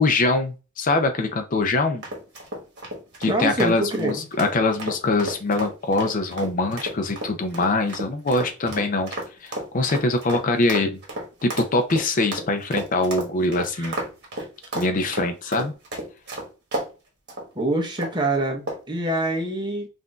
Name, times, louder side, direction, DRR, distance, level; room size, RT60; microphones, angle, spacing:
voice 1, 0.0-2.0 3.2-11.0 11.4-14.0 14.7-15.7, left 2 dB, 40° left, 0.5 m, -23 dB
sound 1, 2.0-16.9 17.3-17.5 18.0-18.2 18.7-19.0, right 1 dB, 50° right, 1.3 m, -33 dB
voice 2, 3.2-4.2 13.8-13.9 17.5-19.9, right 2 dB, 20° right, 0.8 m, -25 dB
5.7 x 2.6 x 2.3 m
head